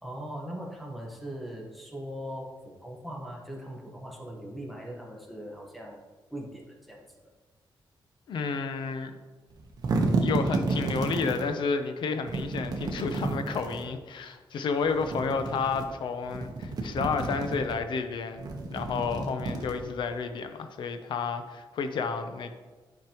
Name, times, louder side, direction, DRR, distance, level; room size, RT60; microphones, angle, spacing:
voice 1, 0.0-6.0 6.3-7.0 19.2-19.4, equal, ahead, -1 dB, 1.1 m, -40 dB
voice 2, 8.3-9.1 10.2-22.5, left 5 dB, 70° left, 8 dB, 0.7 m, -31 dB
sound 1, 9.5-11.5 12.3-13.9 14.8-15.9 16.2-17.7 18.3-20.1, right 3 dB, 50° right, 1.0 m, -31 dB
10.5 x 5.3 x 3.0 m, 1.3 s
wide cardioid pair, 165°, 8 cm